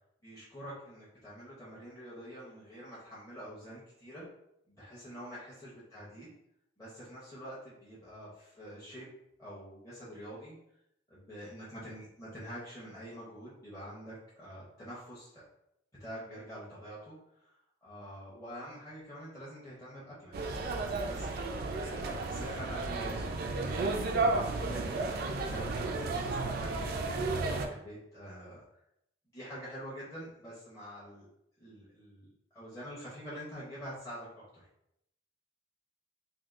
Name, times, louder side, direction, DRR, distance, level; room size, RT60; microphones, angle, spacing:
voice 1, 0.2-4.3 4.7-6.3 6.8-9.1 9.4-10.6 11.1-15.4 16.0-17.5 17.8-21.5 21.8-24.0 24.6-25.2 25.4-28.6 29.3-31.3 31.6-34.6, equal, 15° left, -9 dB, 0.7 m, -46 dB
sound 1, 20.3-27.7, right 3 dB, 50° right, 0.3 m, -33 dB
3.5 x 2.3 x 2.4 m, 0.80 s
head